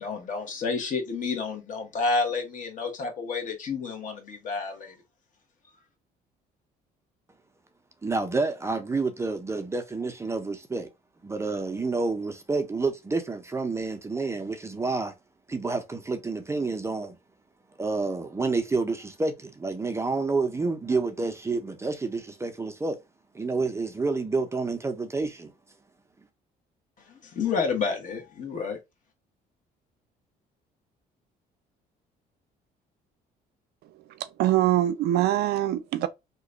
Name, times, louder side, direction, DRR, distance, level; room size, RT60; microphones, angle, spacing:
voice 1, 0.0-4.9 27.1-28.8, left 4 dB, 50° left, 1.2 m, -30 dB
voice 2, 8.0-10.9 11.2-15.1 15.5-17.1 17.8-23.0 23.3-25.5, right 3 dB, 15° right, 0.5 m, -29 dB
voice 3, 34.1-36.1, right 13 dB, 70° right, 0.4 m, -24 dB
2.9 x 2.2 x 3.8 m
cardioid pair, 110°, 17 cm